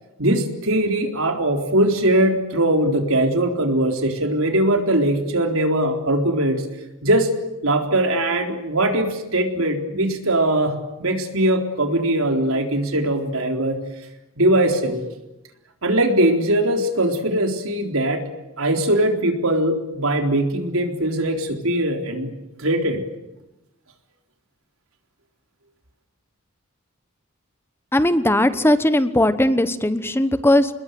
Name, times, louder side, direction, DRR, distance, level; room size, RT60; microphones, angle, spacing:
voice 1, 0.2-6.6 7.0-7.3 7.6-13.8 14.4-15.0 15.8-18.2 18.6-22.3 22.6-23.0, right 1 dB, 80° right, 4 dB, 4.0 m, -21 dB
voice 2, 27.9-30.7, left 1 dB, 10° left, 12 dB, 1.1 m, -18 dB
28.0 x 21.0 x 9.3 m, 0.96 s
head